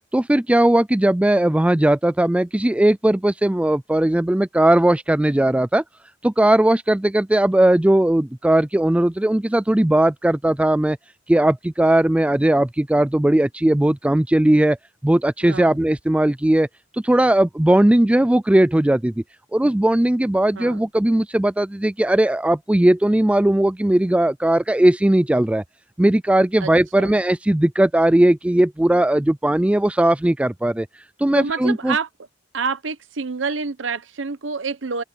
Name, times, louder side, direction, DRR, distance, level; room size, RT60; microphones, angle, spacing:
voice 1, 0.1-5.8 6.2-11.0 11.3-14.8 15.0-16.7 17.0-19.1 19.5-25.6 26.0-30.9 31.2-32.0, right 1 dB, 5° right, 0.3 m, -18 dB
voice 2, 15.4-15.8 20.6-20.8 26.6-27.2 31.3-32.1 32.5-35.0, right 4 dB, 80° right, 0.9 m, -27 dB
open air
head